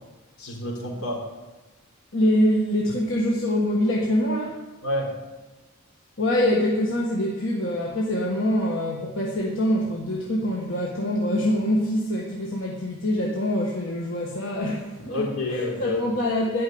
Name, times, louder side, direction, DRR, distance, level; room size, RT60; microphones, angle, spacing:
voice 1, 0.4-1.2 4.8-5.2 15.1-16.1, left 1 dB, 75° left, -1 dB, 3.9 m, -28 dB
voice 2, 2.1-4.6 6.2-16.6, left 1 dB, 60° left, -3 dB, 1.7 m, -24 dB
12.5 x 6.5 x 9.5 m, 1.2 s
head